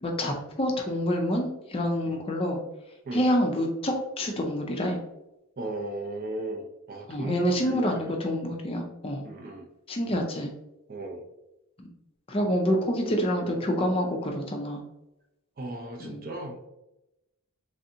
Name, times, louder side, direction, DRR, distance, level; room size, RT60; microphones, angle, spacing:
voice 1, 0.0-2.6 3.1-5.0 7.1-9.2 9.9-10.5 11.8-11.9 12.3-14.8 16.0-16.2, equal, 25° left, 2 dB, 0.4 m, -27 dB
voice 2, 5.6-8.2 9.2-9.7 10.9-11.2 15.6-16.6, right 2 dB, 40° right, 2 dB, 0.5 m, -35 dB
3.3 x 2.6 x 2.7 m, 0.91 s
head